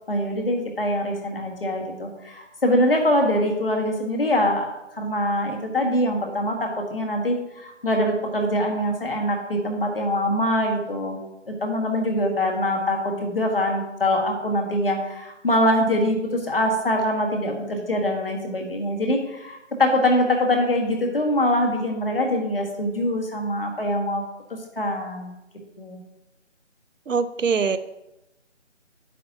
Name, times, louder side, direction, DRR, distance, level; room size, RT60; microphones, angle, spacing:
voice 1, 0.1-11.2 11.5-24.2 24.8-25.3 25.8-26.0, left 1 dB, 50° left, 2 dB, 1.6 m, -23 dB
voice 2, 27.1-27.8, right 5 dB, 80° right, 13 dB, 0.7 m, -22 dB
9.2 x 7.3 x 2.9 m, 0.93 s
figure-of-eight pair, 170°, 37 cm